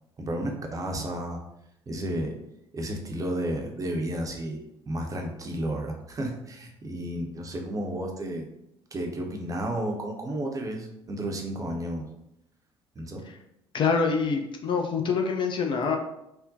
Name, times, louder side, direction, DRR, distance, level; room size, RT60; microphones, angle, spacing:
voice 1, 0.2-1.4 1.9-2.4 2.7-8.5 8.9-12.1 13.0-13.2, right 1 dB, 25° right, 1 dB, 0.6 m, -32 dB
voice 2, 13.7-16.0, left 5 dB, 35° left, 3 dB, 0.4 m, -25 dB
3.5 x 2.1 x 2.6 m, 0.84 s
figure-of-eight pair, 55°, 14 cm